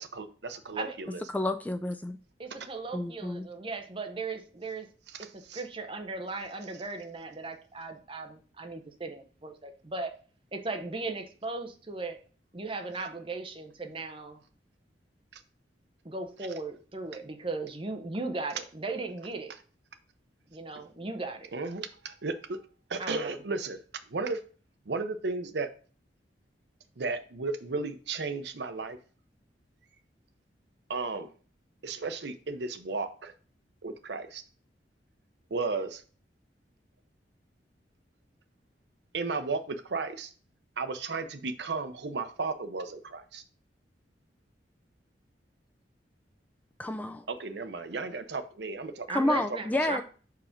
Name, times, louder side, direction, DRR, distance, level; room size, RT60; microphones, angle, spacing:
voice 1, 0.0-1.2 5.1-5.6 15.3-15.4 20.7-20.8 21.5-22.6 22.9-23.8 24.1-24.4 24.9-25.7 27.0-29.0 30.9-31.3 31.8-33.3 33.8-34.4 35.5-36.0 39.1-40.3 40.8-43.4 47.3-49.4 49.9-50.0, right 3 dB, 70° right, 0.7 m, -34 dB
voice 2, 1.3-2.2 2.9-3.5 46.8-47.3 49.1-50.0, left 1 dB, 10° left, 0.3 m, -29 dB
voice 3, 2.4-4.9 5.2-10.1 10.5-12.2 12.5-14.4 16.0-19.5 20.5-21.5 23.0-23.4 49.1-50.0, right 3 dB, 30° right, 0.9 m, -37 dB
5.0 x 4.8 x 5.8 m
head